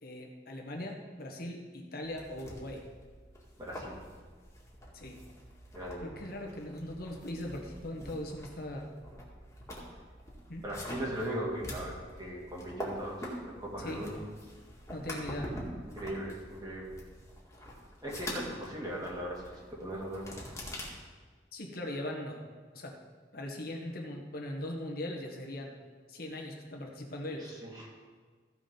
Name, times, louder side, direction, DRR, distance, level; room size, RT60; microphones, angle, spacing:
voice 1, 0.0-2.8 4.9-5.2 6.0-8.9 10.5-10.6 13.8-14.0 14.9-15.5 21.5-22.4 22.7-23.0 23.3-25.7 26.1-27.5, left 1 dB, 60° left, 2 dB, 1.6 m, -40 dB
sound 1, 2.0-20.9, equal, 20° left, 2.1 m, -45 dB
voice 2, 3.6-4.0 5.7-6.1 10.6-14.2 15.9-16.9 18.0-19.4 19.7-20.4 27.4-27.9, right 1 dB, 25° right, -4 dB, 2.4 m, -39 dB
15.0 x 5.0 x 5.4 m, 1.5 s
head